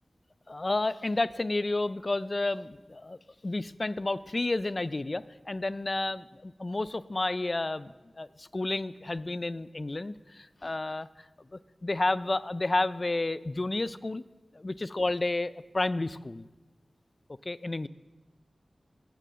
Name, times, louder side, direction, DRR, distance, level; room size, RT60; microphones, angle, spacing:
voice 1, 0.5-3.2 3.4-11.1 11.5-14.2 14.5-16.5 17.4-17.9, left 2 dB, 40° left, 16 dB, 0.3 m, -31 dB
9.1 x 7.3 x 7.3 m, 1.2 s
wide cardioid pair, 80°, 0 cm